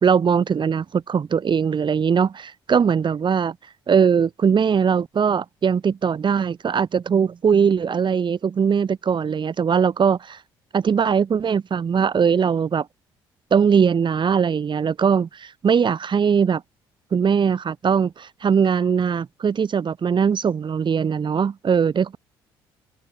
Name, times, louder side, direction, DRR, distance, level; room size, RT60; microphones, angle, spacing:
voice 1, 0.0-3.6 3.9-10.4 10.7-12.9 13.5-16.6 17.1-22.2, right 7 dB, 40° right, 1.3 m, -20 dB
hypercardioid pair, 50°, 12 cm